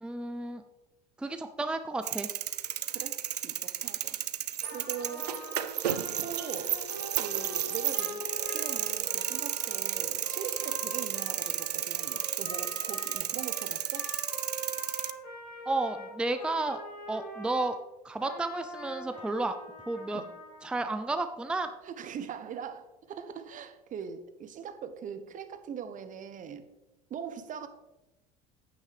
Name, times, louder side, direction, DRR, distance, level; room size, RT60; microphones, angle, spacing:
voice 1, 0.0-0.6 1.2-2.3 15.7-16.8 17.1-17.8 18.0-19.6 19.9-20.2 20.6-21.7, right 2 dB, 5° right, 9 dB, 0.5 m, -32 dB
sound 1, 2.0-15.1, right 11 dB, 90° right, 0.4 m, -33 dB
voice 2, 2.9-4.2 4.7-5.3 6.2-6.8 7.2-8.2 8.5-14.1 20.1-20.3 21.8-26.7 27.1-27.7, right 7 dB, 40° right, 11 dB, 0.9 m, -41 dB
Trumpet, 4.6-17.7 18.2-20.7, left 1 dB, 75° left, 3.2 m, -44 dB
8.9 x 8.6 x 3.4 m, 1.0 s
hypercardioid pair, 70°, 20 cm